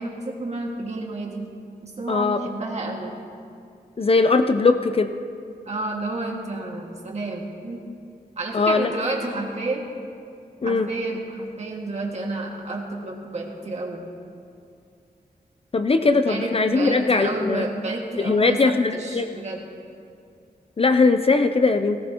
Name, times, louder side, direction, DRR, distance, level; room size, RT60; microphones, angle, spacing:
voice 1, 0.0-1.5 1.8-3.2 5.7-7.8 8.4-9.8 10.6-14.1 16.3-19.6, right 2 dB, 45° right, -1 dB, 1.9 m, -30 dB
voice 2, 2.1-2.4 4.0-5.1 8.5-8.9 10.6-10.9 15.7-17.7 18.2-19.3 20.8-22.0, left 3 dB, 35° left, 8 dB, 0.5 m, -20 dB
18.5 x 17.5 x 2.9 m, 2.4 s
wide cardioid pair, 155°, 16 cm